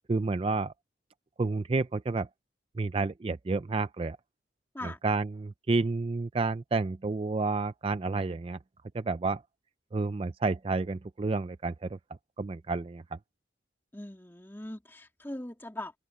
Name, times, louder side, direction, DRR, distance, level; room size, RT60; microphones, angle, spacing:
voice 1, 0.1-0.7 1.4-2.3 2.8-4.2 4.8-8.6 8.9-9.4 9.9-12.0 12.4-13.2, right 3 dB, 30° right, 0.3 m, -30 dB
voice 2, 13.9-16.0, left 1 dB, 10° left, 2.1 m, -40 dB
open air
head